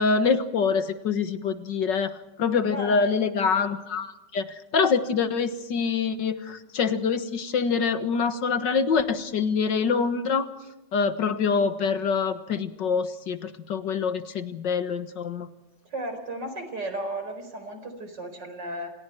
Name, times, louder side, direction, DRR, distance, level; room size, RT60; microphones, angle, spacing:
voice 1, 0.0-2.1 2.4-10.5 10.9-15.5, left 5 dB, 75° left, 10 dB, 2.1 m, -25 dB
voice 2, 2.7-3.3 15.8-18.9, right 1 dB, 70° right, 7 dB, 5.0 m, -34 dB
29.0 x 26.5 x 4.6 m, 0.97 s
omnidirectional pair, 2.0 m